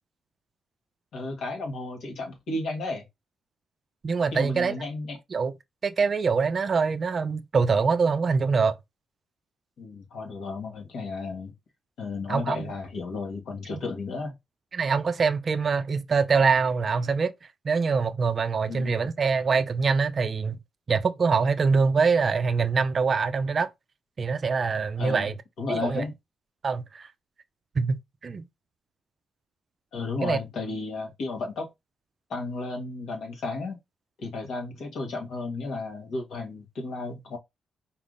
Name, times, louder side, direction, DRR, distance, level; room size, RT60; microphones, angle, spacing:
voice 1, 1.1-3.0 4.3-5.2 9.8-11.5 12.0-14.4 18.7-18.9 25.0-25.3 25.6-26.1 29.9-31.7 32.3-33.8 34.2-37.4, left 3 dB, 70° left, 1.5 m, -33 dB
voice 2, 4.0-4.7 5.3-5.5 5.8-8.8 12.3-12.7 13.7-13.8 14.7-17.3 17.6-20.6 20.9-23.7 24.2-25.3 25.7-26.0 26.6-27.1 27.8-28.4 30.2-30.4, right 5 dB, 35° right, 0.4 m, -24 dB
4.6 x 3.5 x 2.5 m
cardioid pair, 135°, 0 cm